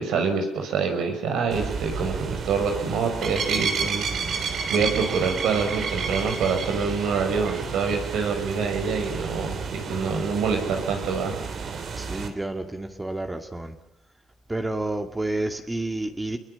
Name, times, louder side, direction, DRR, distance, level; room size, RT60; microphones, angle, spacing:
voice 1, 0.0-11.4, right 5 dB, 85° right, 5 dB, 6.5 m, -26 dB
sound 1, 1.5-12.3, right 5 dB, 60° right, 3.6 m, -31 dB
voice 2, 12.0-13.7 14.5-16.4, right 2 dB, 15° right, 5 dB, 2.4 m, -30 dB
28.0 x 22.5 x 7.2 m, 0.87 s
cardioid pair, 90°, 0 cm